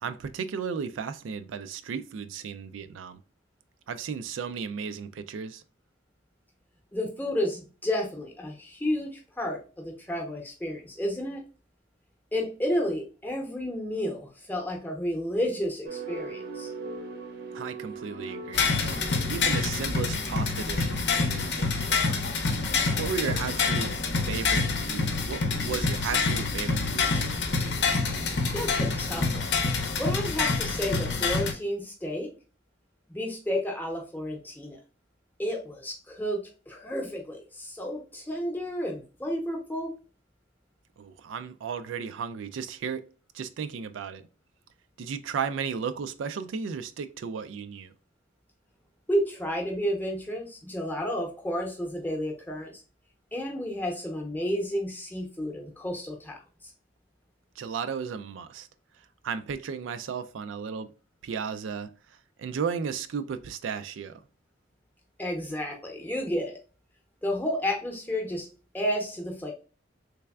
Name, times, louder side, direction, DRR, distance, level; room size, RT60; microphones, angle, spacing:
voice 1, 0.0-3.2 3.9-5.6 17.5-18.7 19.3-22.2 23.0-23.9 24.3-27.4 41.0-43.0 43.3-44.2 45.0-47.9 57.6-58.7 59.2-60.9 61.2-61.9 62.4-64.2, right 6 dB, 85° right, 0.3 m, -34 dB
voice 2, 6.9-11.4 12.3-16.7 28.5-29.5 30.0-32.3 33.1-34.8 35.4-36.4 36.7-40.0 49.1-52.7 53.3-56.7 65.2-66.6 67.2-68.5 68.7-69.5, equal, 10° left, 0.7 m, -31 dB
sound 1, 15.8-29.2, right 3 dB, 65° right, 0.7 m, -43 dB
sound 2, 18.5-31.5, left 4 dB, 65° left, 0.6 m, -27 dB
3.3 x 3.3 x 2.3 m
head